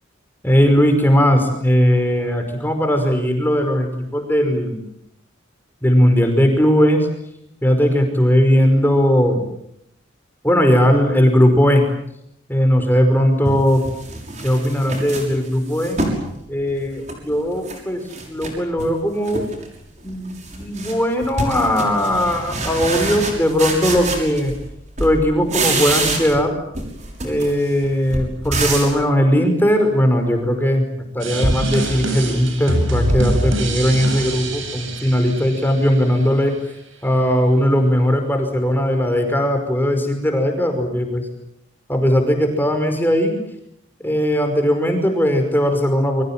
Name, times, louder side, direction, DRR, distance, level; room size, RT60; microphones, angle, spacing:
voice 1, 0.4-4.8 5.8-7.1 7.6-9.4 10.4-11.8 12.5-13.9 14.4-16.0 16.5-19.5 20.0-24.5 25.0-26.6 27.2-30.9 31.1-36.5 37.0-41.3 41.9-43.4 44.0-46.2, equal, 10° left, 5 dB, 5.4 m, -18 dB
sound 1, 12.8-12.9 13.4-16.3 16.7-17.8 18.1-18.9 19.2-19.7 20.0-24.7 25.0-26.5 26.7-29.0, right 2 dB, 35° right, 6.4 m, -26 dB
sound 2, 31.2-36.2, right 1 dB, 80° right, 7.9 m, -23 dB
29.0 x 24.5 x 7.5 m, 0.75 s
head